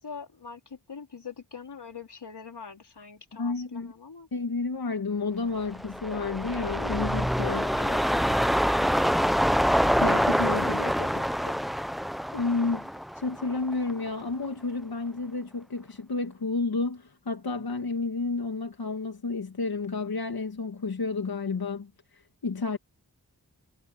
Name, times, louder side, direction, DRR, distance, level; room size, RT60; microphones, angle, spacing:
voice 1, 0.0-4.3 7.4-8.5 10.6-11.6, left 6 dB, 85° left, 4.1 m, -43 dB
voice 2, 3.3-3.9 4.3-7.7 9.8-10.9 12.3-12.9 13.1-22.8, left 3 dB, 65° left, 1.7 m, -31 dB
sound 1, 5.6-14.1 14.4-14.5, equal, ahead, 0.6 m, -26 dB
wide cardioid pair, 65°, 39 cm